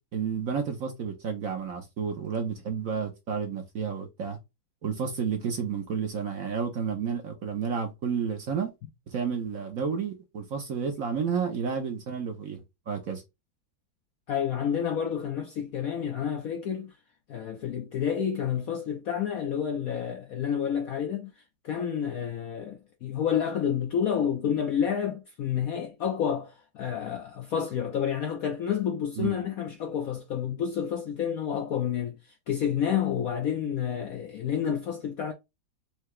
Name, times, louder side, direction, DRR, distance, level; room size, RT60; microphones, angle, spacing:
voice 1, 0.1-4.4 4.8-8.7 9.1-13.2 29.2-29.4, right 6 dB, 55° right, 1.0 m, -31 dB
voice 2, 14.3-16.9 17.3-21.3 21.6-32.2 32.5-35.3, left 8 dB, 70° left, 0.8 m, -29 dB
4.7 x 2.8 x 3.1 m
omnidirectional pair, 2.1 m